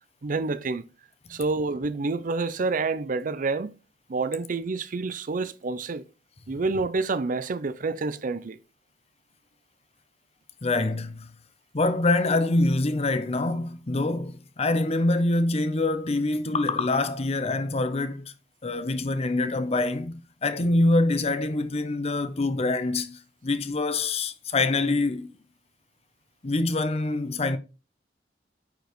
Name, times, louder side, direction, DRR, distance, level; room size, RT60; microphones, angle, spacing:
voice 1, 0.2-0.8 1.3-3.7 4.1-6.0 6.5-8.6, right 3 dB, 50° right, 0.5 m, -28 dB
voice 2, 10.6-11.3 11.7-18.3 18.6-25.3 26.4-27.6, left 2 dB, 35° left, 0.7 m, -25 dB
8.9 x 5.2 x 3.1 m
head